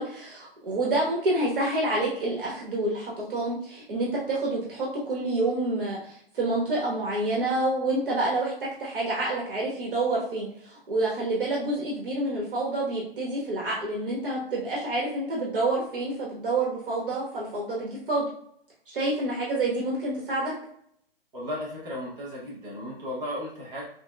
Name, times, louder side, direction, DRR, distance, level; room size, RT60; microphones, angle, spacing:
voice 1, 0.0-18.3 18.9-20.5, right 2 dB, 65° right, -3 dB, 1.2 m, -28 dB
voice 2, 21.3-23.9, left 1 dB, 15° right, -5 dB, 0.8 m, -35 dB
5.9 x 2.1 x 2.2 m, 0.69 s
hypercardioid pair, 150°, 29 cm